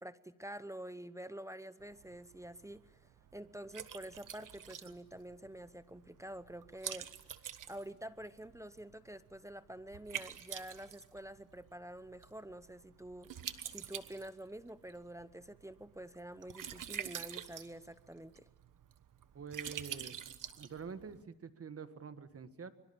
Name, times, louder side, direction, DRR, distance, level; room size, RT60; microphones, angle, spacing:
voice 1, 0.0-7.1 7.7-13.3 13.7-18.5, right 1 dB, 10° right, 14 dB, 0.9 m, -48 dB
Liquid, 1.8-21.2, right 9 dB, 60° right, 1.4 m, -48 dB
voice 2, 19.3-20.2 20.6-22.7, right 6 dB, 40° right, 10 dB, 1.8 m, -46 dB
24.5 x 23.5 x 7.2 m, 1.0 s
cardioid pair, 90°, 37 cm